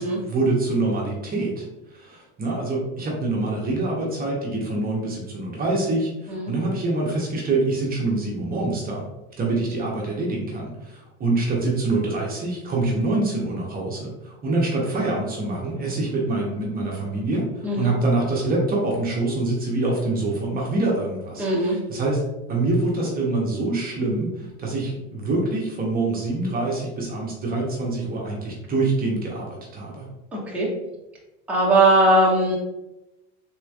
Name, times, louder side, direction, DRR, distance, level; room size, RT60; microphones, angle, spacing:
voice 1, 0.0-9.1 9.4-22.2 22.5-30.1, right 2 dB, 30° right, -2 dB, 0.8 m, -25 dB
voice 2, 17.6-17.9 21.4-21.8 30.3-30.7 31.5-32.6, right 1 dB, 5° right, -5 dB, 0.8 m, -19 dB
3.5 x 3.0 x 2.4 m, 0.97 s
supercardioid pair, 115°, 32 cm